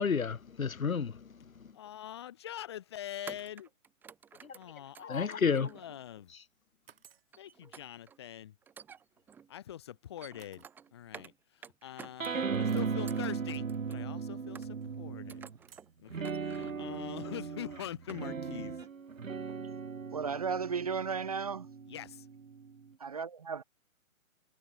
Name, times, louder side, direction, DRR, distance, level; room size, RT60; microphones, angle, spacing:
voice 1, 0.0-1.3 1.6-1.7 4.4-4.6 5.0-5.7, left 6 dB, 80° left, 1.0 m, -31 dB
voice 2, 1.7-3.7 4.5-6.3 7.4-8.6 9.5-10.6 10.9-14.6 14.8-15.4 16.0-18.8 21.9-22.3, left 11 dB, 20° left, 0.7 m, -44 dB
sound 1, 1.8-2.1 3.3-6.2 7.3-8.2 8.6-9.5 10.0-11.4 11.6-12.6 13.0-14.1 14.6-15.0 15.3-15.9 16.2-16.9 17.4-17.5 17.8-18.6 18.8-19.1 19.5-19.6, right 7 dB, 5° right, 0.9 m, -52 dB
sound 2, 5.9-6.1 6.9-7.3 9.4-9.5 10.4-10.7 11.6-11.7 12.7-13.0 14.6-14.9 15.7-16.0, right 9 dB, 45° right, 3.6 m, -60 dB
sound 3, 12.2-15.6 16.1-22.9, right 5 dB, 70° right, 1.7 m, -37 dB
voice 3, 20.1-21.7 23.0-23.6, right 6 dB, 30° right, 0.6 m, -34 dB
figure-of-eight pair, 135°, 41 cm